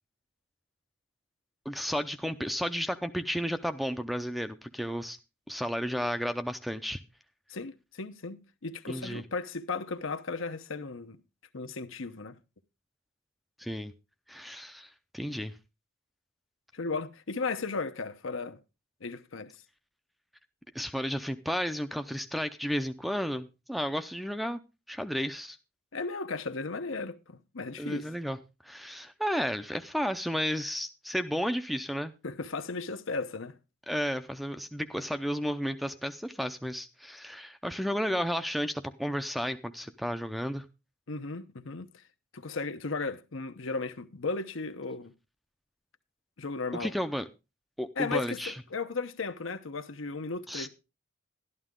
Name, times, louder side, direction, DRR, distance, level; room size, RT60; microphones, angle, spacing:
voice 1, 1.7-5.2 5.5-7.0 8.9-9.2 13.6-13.9 14.3-15.6 20.7-24.6 24.9-25.6 27.8-28.4 28.6-32.1 33.9-40.6 46.7-47.2 47.8-48.6 50.5-50.7, equal, ahead, 0.5 m, -33 dB
voice 2, 7.5-11.2 11.5-12.4 16.7-18.6 19.0-19.6 25.9-28.1 32.2-33.6 41.1-42.0 42.3-45.1 46.4-46.9 48.0-50.7, left 4 dB, 80° left, 0.9 m, -35 dB
12.0 x 11.0 x 3.7 m
head